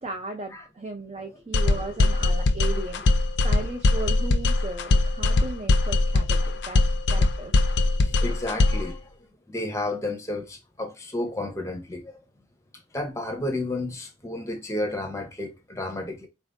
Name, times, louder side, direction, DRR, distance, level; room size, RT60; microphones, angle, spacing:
voice 1, 0.0-6.8 7.1-7.5, right 3 dB, 30° right, 0.5 m, -36 dB
sound 1, 1.5-8.9, left 2 dB, 65° left, 0.5 m, -21 dB
voice 2, 8.0-12.2 12.9-16.3, left 2 dB, 15° left, 0.7 m, -32 dB
4.3 x 2.5 x 3.4 m
head